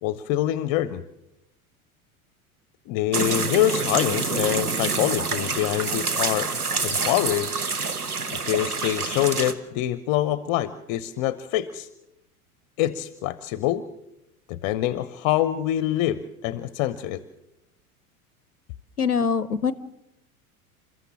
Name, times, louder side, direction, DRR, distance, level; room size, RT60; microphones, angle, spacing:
voice 1, 0.0-1.0 2.9-6.5 6.8-7.5 8.3-11.9 12.8-13.8 14.5-17.2, left 13 dB, 40° left, 15 dB, 0.8 m, -25 dB
sound 1, 3.1-9.5, right 4 dB, 85° right, 1.2 m, -27 dB
voice 2, 19.0-19.7, left 6 dB, 90° left, 17 dB, 0.7 m, -23 dB
29.0 x 14.0 x 7.3 m, 0.86 s
figure-of-eight pair, 80°, 44 cm